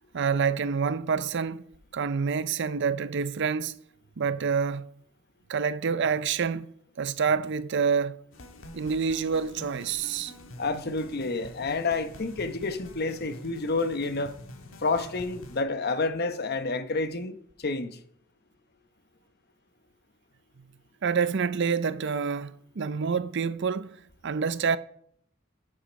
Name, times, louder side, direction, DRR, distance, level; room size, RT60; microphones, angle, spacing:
voice 1, 0.1-1.6 1.9-3.7 4.2-4.9 5.5-8.2 8.7-10.3 21.0-24.0 24.2-24.8, right 6 dB, 60° right, 0.5 m, -27 dB
sound 1, 8.3-15.6, left 1 dB, 90° left, 1.6 m, -46 dB
voice 2, 10.6-14.3 14.8-18.0, left 3 dB, 50° left, 0.9 m, -29 dB
11.5 x 7.4 x 5.2 m
head